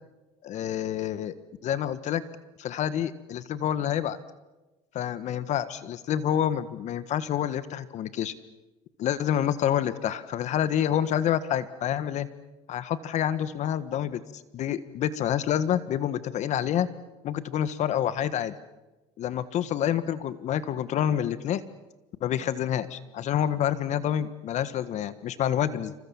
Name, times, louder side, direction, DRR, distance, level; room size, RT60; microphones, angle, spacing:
voice 1, 0.4-1.3 1.6-2.2 2.6-4.2 4.9-8.3 9.0-12.3 12.7-14.2 14.5-16.9 17.2-18.5 19.2-21.6 22.2-25.9, left 10 dB, 55° left, 14 dB, 1.5 m, -28 dB
27.5 x 25.5 x 7.3 m, 1.1 s
supercardioid pair, 90°, 15 cm